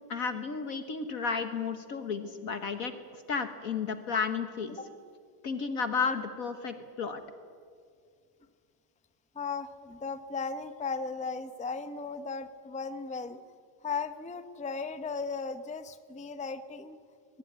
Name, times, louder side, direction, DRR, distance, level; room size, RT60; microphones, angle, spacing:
voice 1, 0.1-4.8 5.4-7.2, left 5 dB, 55° left, 9 dB, 1.5 m, -33 dB
voice 2, 9.3-13.4 13.8-17.0, left 4 dB, 10° left, 11 dB, 0.4 m, -36 dB
22.0 x 20.5 x 9.4 m, 2.2 s
omnidirectional pair, 1.9 m